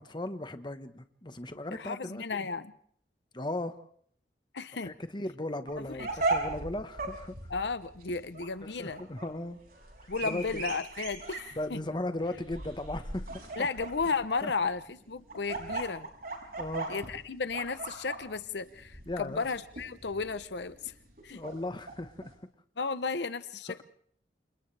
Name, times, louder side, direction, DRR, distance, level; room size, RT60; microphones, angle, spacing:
voice 1, 0.0-2.5 3.3-3.8 4.8-7.4 8.6-9.6 10.0-10.6 11.6-13.7 14.4-14.5 16.6-16.9 19.1-19.4 21.3-22.3 23.7-23.8, left 1 dB, 25° left, 9 dB, 1.3 m, -37 dB
voice 2, 1.7-2.7 4.5-4.9 5.8-6.1 7.5-9.0 10.1-11.8 13.6-16.1 16.9-20.9 21.2-21.4 22.8-23.8, left 4 dB, 75° left, 13 dB, 0.8 m, -34 dB
sound 1, 5.7-22.3, right 2 dB, 55° right, 6.2 m, -38 dB
29.0 x 27.5 x 3.4 m, 0.62 s
head